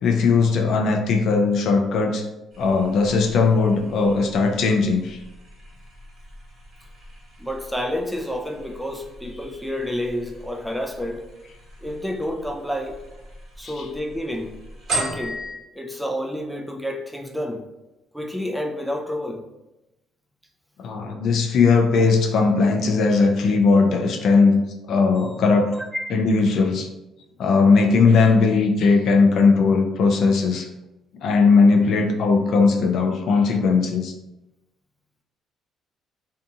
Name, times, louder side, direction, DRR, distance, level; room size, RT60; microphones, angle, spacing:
voice 1, 0.0-2.2 2.6-5.2 13.8-13.9 20.8-24.6 24.9-25.7 26.1-26.9 27.4-30.7 31.2-34.1, left 4 dB, 65° left, 4 dB, 0.3 m, -18 dB
sound 1, 2.5-15.5, right 1 dB, 55° right, 1.2 m, -38 dB
voice 2, 7.4-11.2 11.8-13.0 13.6-14.5 14.9-15.4 15.7-17.6 18.1-19.4 25.1-25.3 25.7-26.1, left 1 dB, ahead, 2 dB, 0.4 m, -29 dB
2.6 x 2.6 x 2.3 m, 0.97 s
cardioid pair, 95°, 0 cm